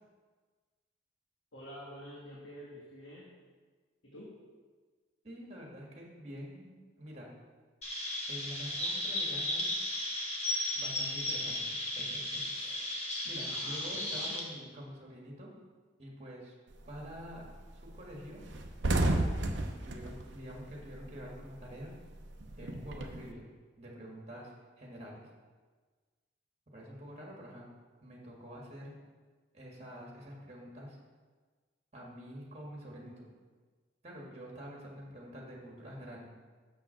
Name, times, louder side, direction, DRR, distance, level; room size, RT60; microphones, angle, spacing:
voice 1, 1.5-3.3 4.0-4.3 13.5-14.3, equal, 75° left, -5 dB, 1.5 m, -48 dB
voice 2, 5.2-6.7 7.0-7.3 8.3-9.8 10.8-15.5 16.0-16.5 16.9-18.4 19.4-21.9 22.6-23.4 23.8-25.3 26.7-27.7 28.0-28.9 29.5-31.0 31.9-33.3 34.0-36.3, equal, 35° right, -2 dB, 1.8 m, -47 dB
Chirp tweet, 7.8-14.4, left 1 dB, 35° left, 1.3 m, -35 dB
sound 1, 16.7-17.1 17.4-17.6 17.9-18.0 18.3-21.3 21.6-23.3, right 2 dB, 65° right, 0.7 m, -32 dB
7.0 x 6.1 x 5.7 m, 1.4 s
head